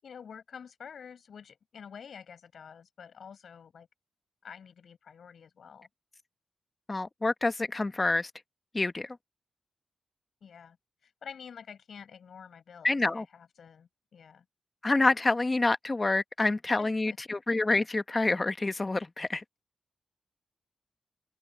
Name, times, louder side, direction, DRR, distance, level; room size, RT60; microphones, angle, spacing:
voice 1, 0.0-3.9 4.4-5.9 10.4-10.8 11.0-14.4 16.8-17.2, left 7 dB, 75° left, 7.7 m, -48 dB
voice 2, 6.9-8.3 8.7-9.2 12.8-13.2 14.8-19.4, left 2 dB, 30° left, 1.2 m, -27 dB
cardioid pair, 65°, 0 cm